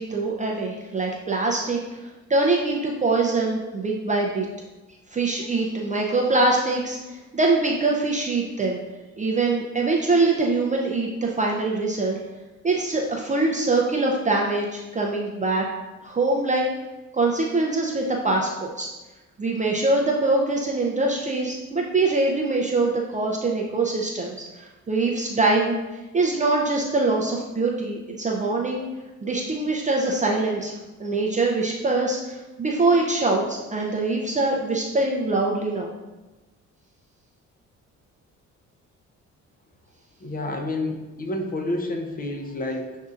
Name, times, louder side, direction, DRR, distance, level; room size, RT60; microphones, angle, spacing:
voice 1, 0.0-4.5 5.1-8.8 9.2-12.2 12.6-15.7 16.0-16.6 17.1-18.9 19.4-25.8 26.1-28.8 29.2-30.7 31.0-35.9, right 3 dB, 25° right, -1 dB, 0.5 m, -23 dB
voice 2, 40.2-43.0, left 2 dB, 30° left, 3 dB, 0.7 m, -29 dB
7.2 x 2.7 x 2.4 m, 1.1 s
cardioid pair, 90°, 30 cm